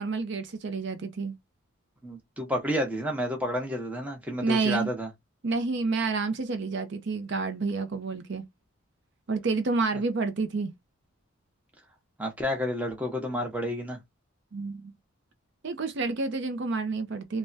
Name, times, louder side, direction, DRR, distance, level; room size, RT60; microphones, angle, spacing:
voice 1, 0.0-1.3 4.4-4.9 5.4-8.4 9.3-10.7 14.5-14.9 15.6-17.4, right 4 dB, 55° right, 0.5 m, -29 dB
voice 2, 2.0-5.1 12.2-14.0, equal, 5° right, 0.8 m, -30 dB
3.4 x 2.1 x 2.5 m
head